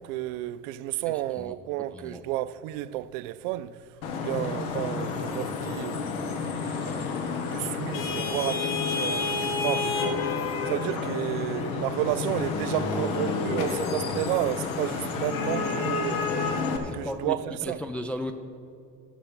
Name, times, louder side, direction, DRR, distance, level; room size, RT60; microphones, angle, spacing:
voice 1, 0.0-3.8 4.2-6.4 6.7-7.2 7.5-16.3 16.9-17.8, right 15 dB, 65° right, 0.5 m, -32 dB
voice 2, 1.1-1.5 1.9-2.2 16.8-17.4 17.6-18.3, left 1 dB, 5° left, 0.5 m, -35 dB
Vehicle horn car horn honking / Traffic noise roadway noise, 4.0-16.8, left 4 dB, 75° left, 1.3 m, -29 dB
13.5 x 5.7 x 5.7 m
hypercardioid pair, 70°, 42 cm